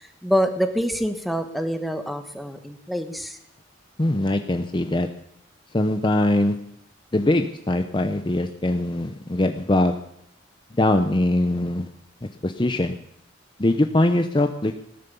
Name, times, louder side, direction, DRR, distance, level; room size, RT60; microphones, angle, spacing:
voice 1, 0.0-3.4, equal, ahead, 6 dB, 1.2 m, -26 dB
voice 2, 4.0-5.1 5.7-6.5 7.1-10.0 10.8-11.9 12.4-12.9 13.6-14.8, left 1 dB, 25° left, 7 dB, 0.7 m, -22 dB
17.5 x 10.5 x 6.9 m, 0.71 s
head